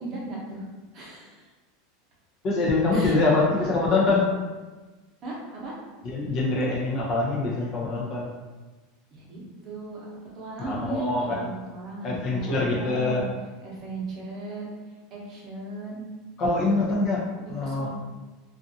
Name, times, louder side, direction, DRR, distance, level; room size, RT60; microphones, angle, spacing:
voice 1, 0.0-0.6 0.9-1.4 2.9-3.1 5.2-5.8 9.1-10.1 10.3-13.3 13.6-14.7 15.1-16.0 17.4-17.9, right 2 dB, 35° right, -5 dB, 0.9 m, -36 dB
voice 2, 2.4-4.3 6.0-8.3 10.6-11.5 12.0-13.2 16.4-17.2 17.5-17.9, left 3 dB, 40° left, -3 dB, 0.6 m, -24 dB
2.5 x 2.4 x 2.6 m, 1.2 s
supercardioid pair, 140°, 0 cm